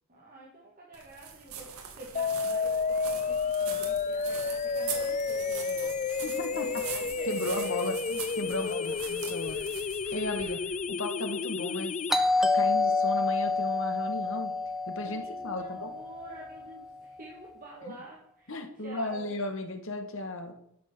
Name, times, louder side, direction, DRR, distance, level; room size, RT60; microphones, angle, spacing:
voice 1, 0.1-8.0 8.4-9.0 12.6-13.0 14.2-14.4 15.0-19.4, right 1 dB, 40° right, -3 dB, 2.2 m, -47 dB
sound 1, 0.9-10.8, right 7 dB, 80° right, 2.1 m, -42 dB
sound 2, 2.2-12.2, left 5 dB, 35° left, 0.4 m, -31 dB
voice 2, 6.2-6.7 6.9-9.6 10.1-10.6 10.9-12.0 12.4-14.5 14.9-15.9 17.9-18.0 18.5-20.5, left 1 dB, 60° left, 6 dB, 1.9 m, -35 dB
Doorbell, 12.1-16.7, left 3 dB, ahead, 0.9 m, -28 dB
12.0 x 6.5 x 6.3 m, 0.73 s
head